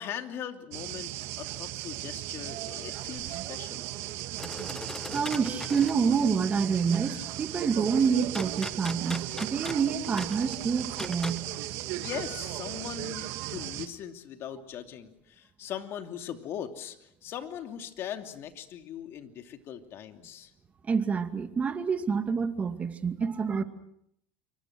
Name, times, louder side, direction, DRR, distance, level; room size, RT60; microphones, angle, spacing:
voice 1, 0.0-3.9 12.0-20.5, left 9 dB, 50° left, 2.8 m, -40 dB
sound 1, 0.7-13.9, right 15 dB, 65° right, 1.9 m, -37 dB
sound 2, 4.4-6.0 8.3-11.5, left 2 dB, 10° left, 1.2 m, -39 dB
voice 2, 5.1-11.7 20.9-23.6, right 6 dB, 25° right, 2.4 m, -27 dB
27.5 x 24.5 x 6.2 m
supercardioid pair, 100°, 5 cm